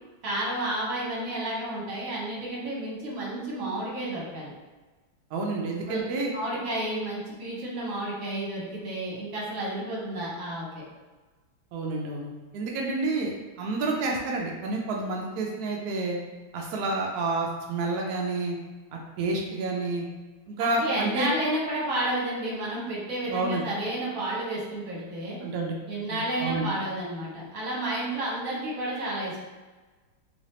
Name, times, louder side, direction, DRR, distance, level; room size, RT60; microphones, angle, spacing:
voice 1, 0.2-4.5 5.9-6.0 6.3-10.8 20.6-25.4 25.9-29.4, right 1 dB, 50° right, -5 dB, 1.2 m, -31 dB
voice 2, 5.3-6.3 11.7-16.2 16.5-18.6 19.2-20.0 20.5-21.3 23.3-23.6 25.4-25.7 26.1-26.7, right 3 dB, 85° right, -1 dB, 0.8 m, -29 dB
3.1 x 3.1 x 2.8 m, 1.3 s
omnidirectional pair, 2.2 m